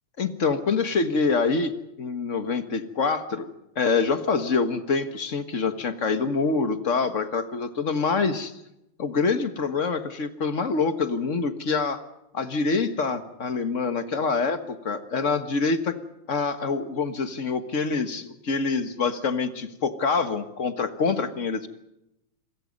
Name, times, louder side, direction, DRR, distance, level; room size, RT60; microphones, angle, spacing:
voice 1, 0.2-1.7 2.0-3.5 3.7-8.5 9.0-12.0 12.3-16.0 16.3-21.7, left 4 dB, 40° left, 9 dB, 1.1 m, -25 dB
27.5 x 23.0 x 5.3 m, 0.87 s
omnidirectional pair, 3.3 m